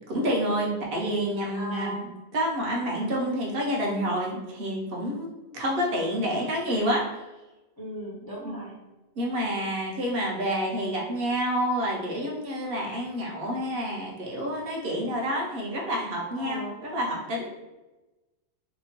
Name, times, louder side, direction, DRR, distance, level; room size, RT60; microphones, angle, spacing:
voice 1, 0.1-2.0 2.3-7.2 9.2-17.5, equal, 60° right, -2 dB, 0.8 m, -28 dB
voice 2, 1.5-2.2 7.8-8.7 16.3-16.8, right 1 dB, 35° left, -6 dB, 0.3 m, -36 dB
2.8 x 2.1 x 2.9 m, 1.1 s
omnidirectional pair, 1.2 m